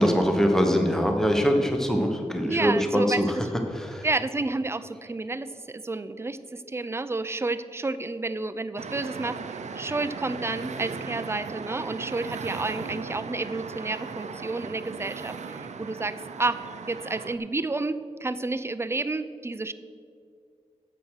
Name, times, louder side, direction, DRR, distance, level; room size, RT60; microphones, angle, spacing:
voice 1, 0.0-3.3 3.7-4.1, equal, 5° left, 3 dB, 1.0 m, -23 dB
voice 2, 2.5-3.5 4.0-16.6 16.9-19.7, right 3 dB, 20° right, 12 dB, 0.4 m, -30 dB
sound 1, 8.8-17.4, right 5 dB, 80° right, 0.6 m, -37 dB
9.1 x 7.8 x 6.3 m, 2.3 s
wide cardioid pair, 145°, 12 cm